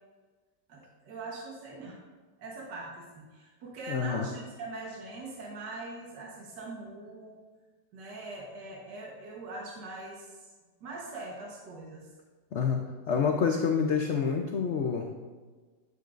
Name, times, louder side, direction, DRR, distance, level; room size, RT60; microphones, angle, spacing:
voice 1, 0.7-2.0 2.4-7.4 7.9-10.5 10.8-12.1, right 2 dB, 70° right, -2 dB, 1.8 m, -42 dB
voice 2, 3.9-4.3 12.5-12.8 13.1-15.1, left 6 dB, 80° left, 3 dB, 0.6 m, -27 dB
9.2 x 9.1 x 2.5 m, 1.4 s
omnidirectional pair, 2.0 m